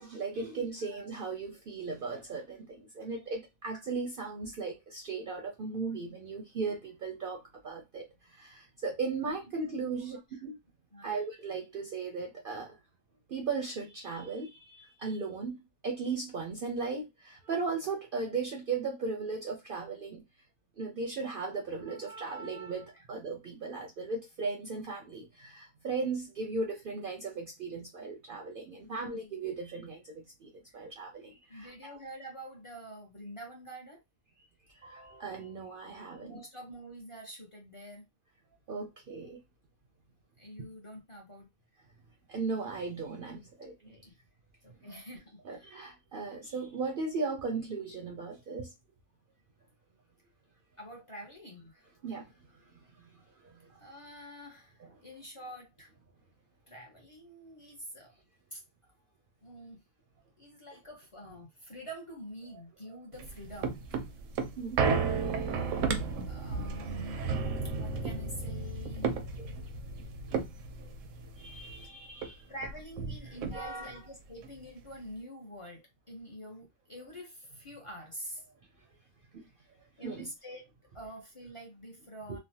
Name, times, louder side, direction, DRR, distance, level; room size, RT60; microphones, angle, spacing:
voice 1, 0.0-8.1 8.3-10.6 11.0-12.8 13.3-20.2 20.8-32.0 34.8-36.4 38.7-39.4 40.6-40.7 42.3-43.7 44.9-45.0 45.4-48.7 52.0-52.3 53.4-53.5 64.6-64.8 69.4-69.5 70.8-70.9 71.4-72.4 73.2-74.0 80.0-80.3 82.3-82.4, right 4 dB, 60° right, 0.6 m, -37 dB
voice 2, 0.6-1.1 9.2-10.4 10.9-11.2 22.9-23.0 28.7-29.2 30.8-30.9 31.5-34.0 36.2-38.1 40.4-41.5 43.6-44.2 44.6-45.8 50.8-51.8 53.8-55.9 56.7-58.1 58.5-58.6 59.4-59.8 60.4-63.8 66.0-67.4 67.6-69.1 72.5-78.4 80.0-80.6 80.9-82.4, equal, 30° left, 0.7 m, -47 dB
sound 1, 63.1-71.8 72.2-72.3 72.6-73.9 74.4-74.5, right 5 dB, 90° right, 0.9 m, -33 dB
3.2 x 2.1 x 2.7 m
omnidirectional pair, 1.3 m